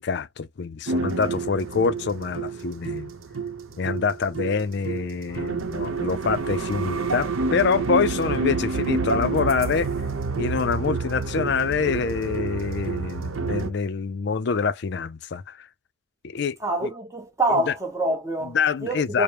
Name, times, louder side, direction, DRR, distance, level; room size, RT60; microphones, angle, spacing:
voice 1, 0.0-3.1 3.8-9.9 10.3-15.7 16.2-16.6 16.8-16.9 17.7-17.8 18.5-19.2, left 5 dB, 55° left, 0.4 m, -26 dB
sound 1, 0.9-13.7, right 4 dB, 90° right, 0.7 m, -28 dB
sound 2, 5.3-10.8, right 4 dB, 55° right, 0.4 m, -43 dB
voice 2, 16.6-19.2, right 2 dB, 15° right, 0.8 m, -26 dB
4.9 x 2.0 x 2.9 m
head